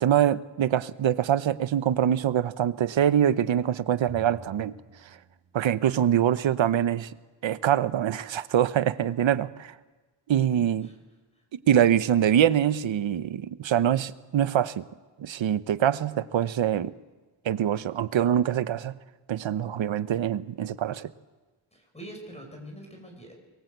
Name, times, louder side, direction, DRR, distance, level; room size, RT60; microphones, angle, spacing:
voice 1, 0.0-4.7 5.5-7.1 7.4-9.7 10.3-10.9 11.7-14.9 15.2-16.9 17.4-19.0 19.3-21.1, right 10 dB, 75° right, 14 dB, 0.9 m, -24 dB
Drum, 4.1-6.5, right 3 dB, 30° right, 1.8 m, -49 dB
voice 2, 10.6-11.0 11.4-11.5 21.7-23.3, right 1 dB, 15° left, 2 dB, 5.8 m, -44 dB
24.0 x 22.0 x 8.1 m, 1.3 s
wide cardioid pair, 140°, 47 cm